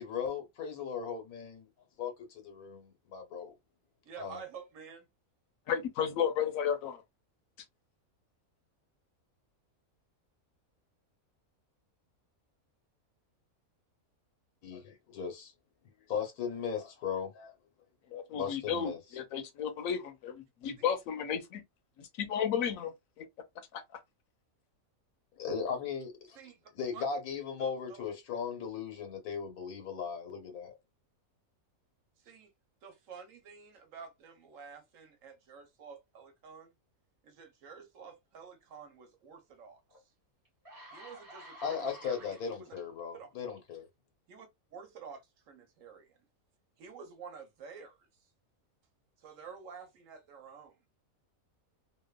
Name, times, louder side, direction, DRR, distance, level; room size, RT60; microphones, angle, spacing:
voice 1, 0.0-1.7 2.0-3.5 4.2-4.4 14.6-15.5 16.1-17.5 18.3-19.0 25.4-26.4 26.8-30.7 41.6-43.9, left 6 dB, 90° left, 1.4 m, -37 dB
voice 2, 4.1-5.1 26.3-26.6 26.9-27.0 27.6-28.0 32.2-32.5 32.8-36.7 37.2-39.8 40.9-42.8 43.1-43.3 44.3-46.2 46.8-48.1 49.2-50.8, right 6 dB, 70° right, 1.1 m, -50 dB
voice 3, 5.7-7.0 18.1-21.6 22.0-23.3 23.7-23.8, left 8 dB, 70° left, 1.0 m, -33 dB
sound 1, 39.9-40.0 40.4-42.8 43.5-43.7, right 1 dB, 20° right, 0.7 m, -51 dB
2.9 x 2.2 x 2.2 m
omnidirectional pair, 1.5 m